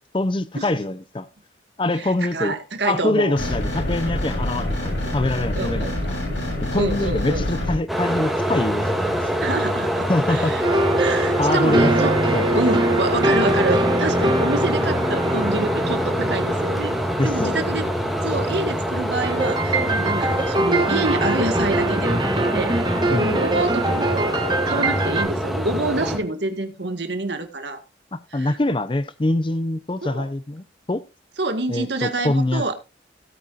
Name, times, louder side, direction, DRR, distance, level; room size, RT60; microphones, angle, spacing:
voice 1, 0.1-1.3 1.8-2.6 2.8-6.2 6.7-9.4 10.1-10.5 11.1-11.9 12.3-12.5 17.2-17.7 23.1-23.5 28.1-31.0 31.7-32.7, left 2 dB, 25° left, 0.5 m, -24 dB
voice 2, 1.9-3.4 5.1-5.2 5.5-6.0 6.7-7.5 9.4-10.6 11.0-12.2 12.5-17.0 17.2-17.9 18.2-22.8 23.1-24.3 24.7-27.8 28.3-28.5 30.0-30.3 31.4-32.7, right 2 dB, 75° right, 1.7 m, -27 dB
sound 1, 3.4-7.8, left 1 dB, 90° left, 7.5 m, -26 dB
sound 2, 7.9-26.2, equal, ahead, 2.3 m, -25 dB
sound 3, 10.6-18.4 19.2-25.2, right 1 dB, 25° right, 1.4 m, -23 dB
17.0 x 8.6 x 2.5 m
head